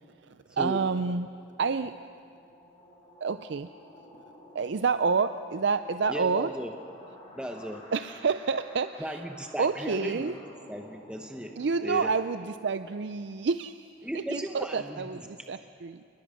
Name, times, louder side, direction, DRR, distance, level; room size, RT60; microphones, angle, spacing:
voice 1, 0.2-1.3 1.6-2.0 3.2-3.7 4.5-6.5 7.9-9.2 9.6-10.4 11.6-16.0, right 5 dB, 55° right, 11 dB, 0.4 m, -29 dB
sound 1, 1.2-13.6, left 1 dB, 25° left, 5.4 m, -53 dB
voice 2, 6.1-6.7 7.3-7.9 9.0-10.4 10.7-12.1 14.0-15.0, equal, 5° right, 3 dB, 0.9 m, -36 dB
29.5 x 20.0 x 6.4 m, 2.6 s
head